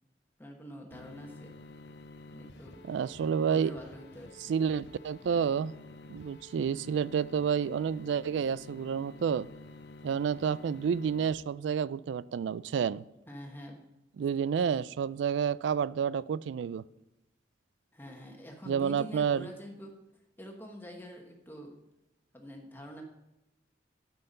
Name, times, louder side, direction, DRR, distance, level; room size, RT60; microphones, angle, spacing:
voice 1, 0.4-1.6 2.3-2.9 3.5-4.5 13.3-13.8 14.4-14.8 17.9-20.0 20.4-21.8 22.3-23.0, equal, 10° left, 1.2 m, -46 dB
sound 1, 0.9-11.3, left 2 dB, 70° left, 0.6 m, -50 dB
voice 2, 2.8-3.7 4.4-5.7 6.1-9.5 10.0-13.0 14.2-16.8 18.7-19.5, right 7 dB, 90° right, 0.3 m, -30 dB
13.0 x 5.7 x 5.4 m
head